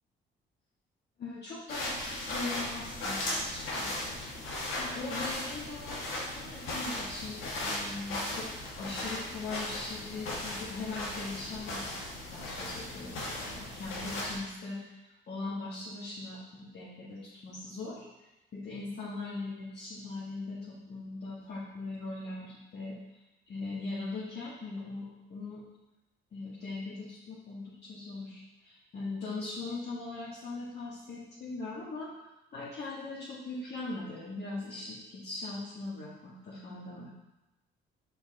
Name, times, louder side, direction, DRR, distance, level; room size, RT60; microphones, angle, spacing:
voice 1, 1.2-4.1 4.8-8.5 8.8-14.8 15.3-18.0 18.5-23.0 23.5-25.6 26.3-32.1 32.5-37.1, left 3 dB, 55° left, -9 dB, 1.8 m, -40 dB
sound 1, 1.7-14.4, left 1 dB, 85° left, 1.9 m, -37 dB
5.5 x 4.6 x 4.2 m, 1.0 s
cardioid pair, 90°, 20 cm